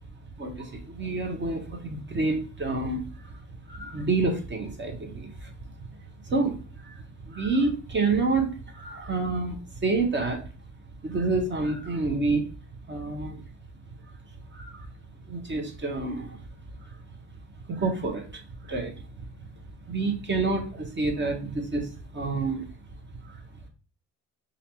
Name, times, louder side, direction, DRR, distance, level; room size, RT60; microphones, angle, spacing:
voice 1, 0.4-3.4 3.7-5.5 6.2-10.4 11.0-12.5 12.9-13.4 14.5-14.9 15.3-16.4 16.9-17.0 17.7-18.9 19.2-19.5 19.9-22.7 23.2-23.4, right 3 dB, 40° right, 3 dB, 1.1 m, -28 dB
5.0 x 2.6 x 3.0 m, 0.36 s
cardioid pair, 90°, 30 cm